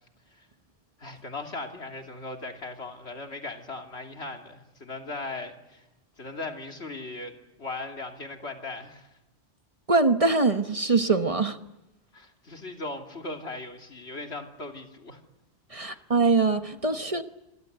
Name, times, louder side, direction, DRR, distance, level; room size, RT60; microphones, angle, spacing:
voice 1, 1.0-5.8 6.2-7.3 7.6-9.1 12.1-15.2 15.8-16.0, left 2 dB, 80° left, 3 dB, 3.1 m, -38 dB
voice 2, 9.9-11.6 15.7-17.2, right 3 dB, 35° right, 9 dB, 1.1 m, -23 dB
27.0 x 22.5 x 8.1 m, 0.96 s
omnidirectional pair, 1.1 m